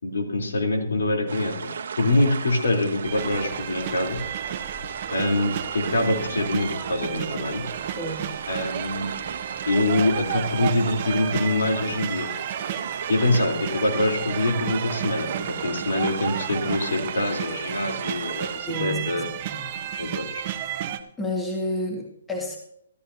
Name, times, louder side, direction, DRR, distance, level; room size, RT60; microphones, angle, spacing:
voice 1, 0.0-1.7 2.0-4.2 5.1-7.6 8.5-9.1 9.7-12.3 12.9-15.3 15.6-19.3 20.0-20.4, left 2 dB, 85° left, 2 dB, 3.7 m, -24 dB
sound 1, 1.3-18.6, right 6 dB, 65° right, 1.1 m, -35 dB
sound 2, 3.0-21.0, right 10 dB, 35° right, 1.0 m, -33 dB
voice 2, 8.0-8.4 12.9-13.0 18.7-19.2 19.5-19.6 21.2-22.6, equal, 5° left, -1 dB, 1.9 m, -30 dB
14.0 x 13.5 x 2.9 m, 0.72 s
hypercardioid pair, 155°, 0 cm